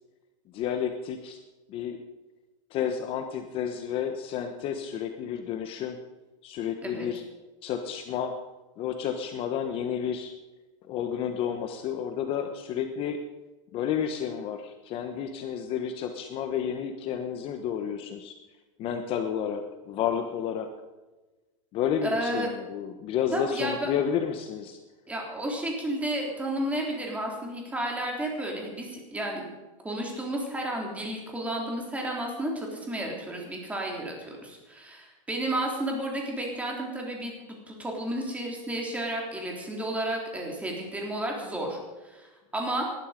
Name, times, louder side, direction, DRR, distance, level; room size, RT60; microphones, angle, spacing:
voice 1, 0.5-1.4 1.7-2.0 2.7-6.0 6.4-7.2 7.6-8.3 8.8-10.3 10.9-13.2 13.7-18.3 18.8-20.7 21.7-24.8, left 8 dB, 35° left, 7 dB, 1.1 m, -31 dB
voice 2, 22.0-22.5 23.3-23.9 25.1-29.4 29.8-37.3 37.7-41.8 42.0-42.8, right 1 dB, 10° right, 0 dB, 3.6 m, -32 dB
19.5 x 12.0 x 5.2 m, 1.2 s
supercardioid pair, 150°, 17 cm